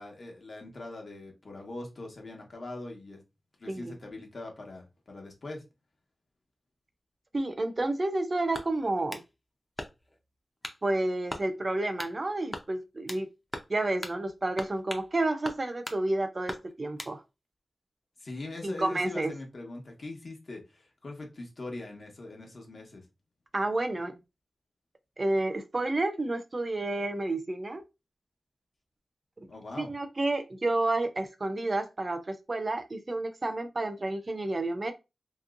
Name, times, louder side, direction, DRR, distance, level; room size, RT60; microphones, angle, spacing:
voice 1, 0.0-3.2 3.6-5.6 18.2-23.1 29.5-29.9, left 2 dB, 55° left, 1.0 m, -42 dB
voice 2, 7.3-9.2 10.8-13.3 13.7-17.2 18.6-19.3 23.5-24.2 25.2-27.8 29.8-34.9, right 2 dB, 35° right, 0.5 m, -30 dB
sound 1, 8.5-9.3 9.8-10.2 10.6-10.8 11.3-11.5 12.0-12.2 12.5-13.3 13.5-13.7 14.0-14.2 14.6-15.1 15.4-16.0 16.5-17.2, left 1 dB, 15° left, 0.5 m, -40 dB
2.9 x 2.9 x 2.4 m
wide cardioid pair, 115°, 0 cm